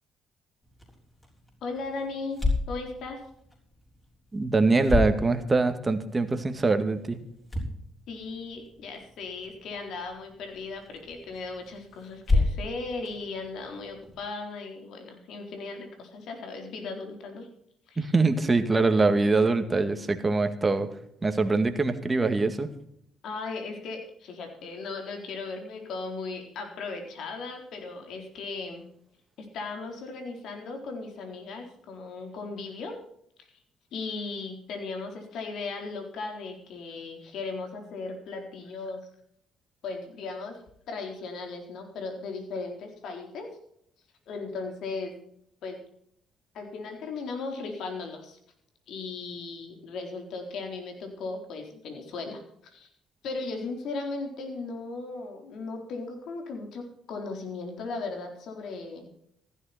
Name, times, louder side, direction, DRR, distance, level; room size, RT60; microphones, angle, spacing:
sound 1, 0.6-14.2, left 3 dB, 20° left, 6.2 m, -34 dB
voice 1, 1.6-2.4 2.7-3.2 8.1-17.5 17.9-18.1 23.2-28.8 29.4-33.0 33.4-33.5 33.9-39.1 39.8-40.6 40.9-43.5 44.3-45.2 45.6-45.8 46.5-48.4 48.9-52.9 53.2-59.1, left 3 dB, 70° left, 3 dB, 4.0 m, -37 dB
voice 2, 4.3-7.2 18.0-20.9 21.2-22.7, right 3 dB, 25° right, 8 dB, 2.0 m, -23 dB
15.0 x 12.5 x 4.3 m, 0.70 s
supercardioid pair, 80°, 0 cm